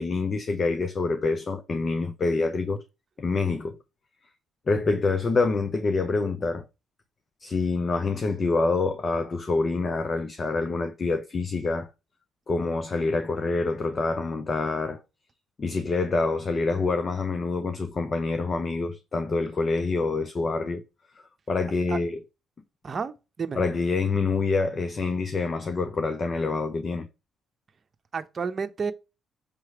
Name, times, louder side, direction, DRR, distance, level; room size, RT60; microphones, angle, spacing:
voice 1, 0.0-2.8 3.2-3.8 4.7-6.7 7.4-11.9 12.5-15.0 15.6-20.8 21.2-22.2 23.5-27.1, left 3 dB, 40° left, 0.8 m, -26 dB
voice 2, 22.8-23.6 28.1-28.9, right 5 dB, 40° right, 0.8 m, -31 dB
6.7 x 3.2 x 6.0 m
cardioid pair, 75°, 0 cm